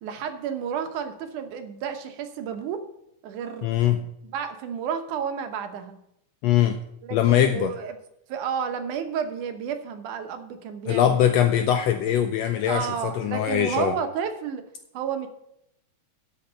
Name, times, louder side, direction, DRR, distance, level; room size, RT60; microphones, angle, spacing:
voice 1, 0.0-2.8 3.2-3.9 4.2-6.0 7.0-8.0 8.3-11.3 12.7-14.7 14.9-15.3, right 7 dB, 80° right, 7 dB, 2.5 m, -31 dB
voice 2, 3.6-4.0 6.4-6.8 7.1-7.7 10.9-13.9, left 10 dB, 90° left, 7 dB, 1.5 m, -22 dB
12.5 x 5.3 x 6.8 m, 0.78 s
omnidirectional pair, 3.5 m